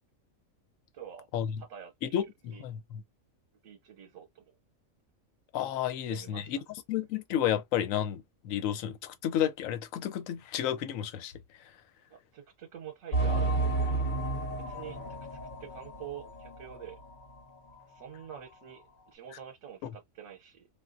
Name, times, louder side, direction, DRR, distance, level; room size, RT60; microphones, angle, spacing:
voice 1, 0.9-1.3 1.6-2.2 2.5-2.6 3.6-4.5 6.1-6.6 12.1-14.1 14.7-15.0 15.3-17.0 17.9-20.7, right 9 dB, 80° right, 1.1 m, -46 dB
voice 2, 2.0-3.0 5.5-6.6 6.9-11.3 19.8-19.9, left 10 dB, 80° left, 1.0 m, -31 dB
sound 1, 13.1-17.4 17.7-17.8 18.4-18.5, right 3 dB, 45° left, 0.9 m, -32 dB
3.3 x 2.4 x 2.5 m
omnidirectional pair, 1.4 m